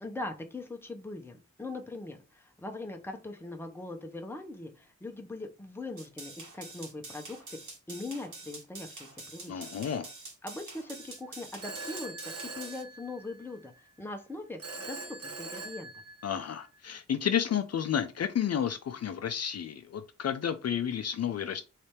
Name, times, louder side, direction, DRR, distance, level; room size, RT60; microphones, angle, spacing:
voice 1, 0.0-9.8 10.4-15.9, left 2 dB, 10° left, 0.6 m, -41 dB
sound 1, 6.0-12.8, right 3 dB, 75° right, 1.7 m, -46 dB
voice 2, 9.5-10.1 16.2-21.6, left 8 dB, 60° left, 0.4 m, -31 dB
Telephone, 11.6-13.6 14.6-16.5, right 3 dB, 55° right, 1.0 m, -42 dB
3.3 x 3.2 x 4.3 m
wide cardioid pair, 180°, 30 cm